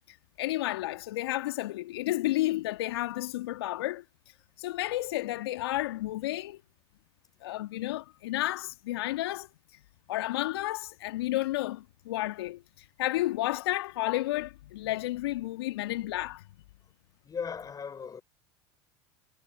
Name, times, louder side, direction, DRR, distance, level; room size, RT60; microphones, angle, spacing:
voice 1, 0.1-4.0 4.6-6.6 7.4-9.5 10.1-12.6 13.0-16.4, left 16 dB, 70° left, 1.7 m, -31 dB
voice 2, 17.2-18.2, left 6 dB, 30° left, 5.1 m, -37 dB
hypercardioid pair, 75°, 13 cm